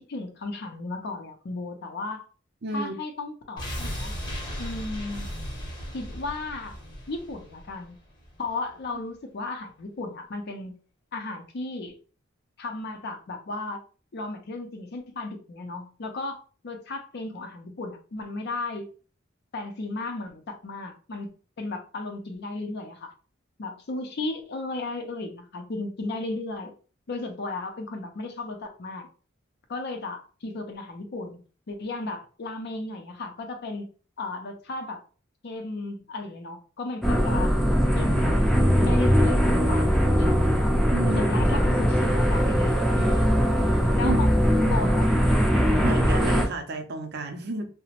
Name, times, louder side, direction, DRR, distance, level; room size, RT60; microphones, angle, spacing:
voice 1, 0.1-2.2 2.7-4.1 4.6-5.3 5.9-6.8 7.1-7.9 8.4-10.7 11.1-11.9 12.6-13.8 14.1-16.4 16.6-18.9 19.5-21.3 21.6-23.1 23.6-26.7 27.1-29.1 29.7-31.4 31.7-33.9 34.2-35.0 35.4-37.6 37.9-38.4 38.8-39.9 40.2-40.4 41.1-43.4 43.9-45.1, left 2 dB, 55° left, 4 dB, 0.5 m, -34 dB
voice 2, 2.6-2.9 40.9-41.3 44.0-44.2 45.8-47.7, right 2 dB, 55° right, 6 dB, 0.5 m, -31 dB
sound 1, 3.6-8.5 8.8-8.9, equal, 25° left, 0.8 m, -36 dB
sound 2, 37.0-46.5, equal, ahead, 0.5 m, -21 dB
2.9 x 2.0 x 2.8 m, 0.38 s
head